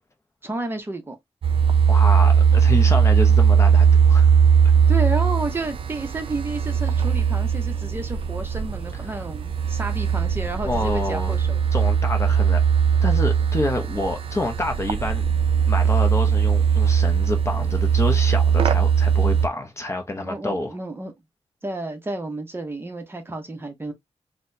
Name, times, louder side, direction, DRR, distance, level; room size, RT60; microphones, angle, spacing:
voice 1, 0.4-1.2 4.9-11.6 20.2-21.1 21.6-23.9, right 2 dB, 20° right, 0.7 m, -31 dB
sound 1, 1.4-19.5, right 7 dB, 55° right, 0.4 m, -19 dB
voice 2, 1.9-4.3 10.6-11.4 11.7-12.6 13.0-15.3 15.7-20.8, left 2 dB, 25° left, 0.5 m, -28 dB
4.0 x 2.0 x 2.6 m
wide cardioid pair, 170°, 11 cm